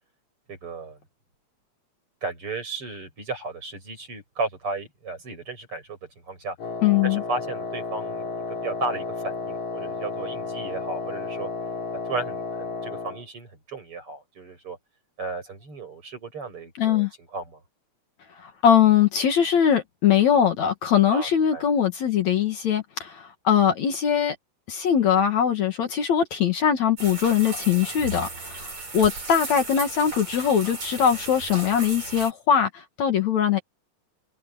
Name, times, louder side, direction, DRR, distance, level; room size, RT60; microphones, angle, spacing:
voice 1, 0.5-1.0 2.2-6.0 6.3-6.5 7.0-11.5 12.1-14.8 15.2-17.1 17.3-17.6 21.1-21.6, right 3 dB, 40° right, 8.4 m, -34 dB
Wind instrument woodwind instrument, 6.6-13.2, left 3 dB, 80° left, 6.3 m, -32 dB
voice 2, 6.8-7.2 16.8-17.1 18.4-24.4 24.7-33.6, left 8 dB, 60° left, 2.8 m, -21 dB
sound 1, 27.0-32.3, right 3 dB, 55° right, 8.8 m, -35 dB
omnidirectional pair, 3.8 m